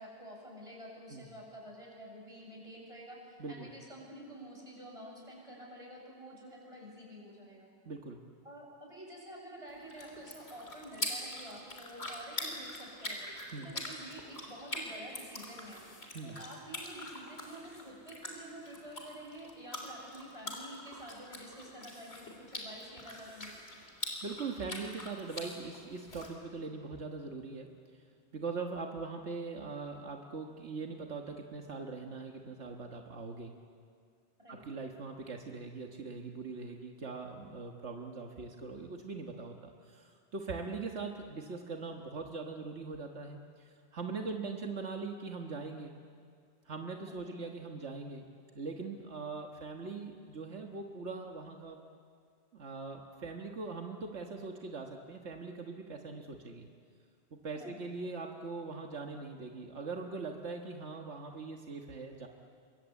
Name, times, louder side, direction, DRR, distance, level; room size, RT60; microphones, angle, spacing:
voice 1, 0.0-7.7 8.4-13.3 13.6-15.8 16.2-23.5 34.4-34.6 47.1-47.4 57.5-57.8, right 1 dB, 30° right, -2 dB, 7.2 m, -49 dB
voice 2, 3.4-3.7 7.9-8.2 13.5-13.7 16.1-16.4 24.2-27.7 28.3-33.5 34.5-46.0 46.7-48.3 48.6-51.8 52.5-56.7 57.3-62.3, right 4 dB, 85° right, 2 dB, 1.8 m, -41 dB
sound 1, 9.7-26.3, left 1 dB, 65° left, 4.2 m, -44 dB
28.0 x 23.0 x 8.4 m, 2.2 s
omnidirectional pair, 1.1 m